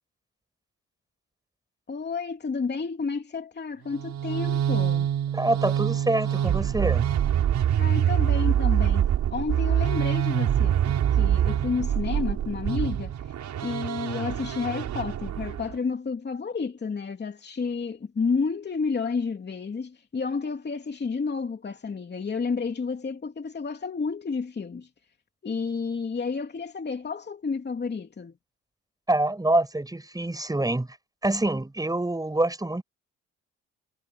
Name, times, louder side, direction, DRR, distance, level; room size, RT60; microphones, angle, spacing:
voice 1, 1.9-5.1 7.8-9.1 9.3-10.8 11.1-13.3 13.6-24.9 25.4-28.3, left 5 dB, 35° left, 2.9 m, -31 dB
sound 1, 3.9-15.7, right 10 dB, 70° right, 5.5 m, -25 dB
voice 2, 5.3-7.1 29.1-30.9 31.2-32.8, right 2 dB, 10° right, 6.7 m, -26 dB
cardioid pair, 90°, 30 cm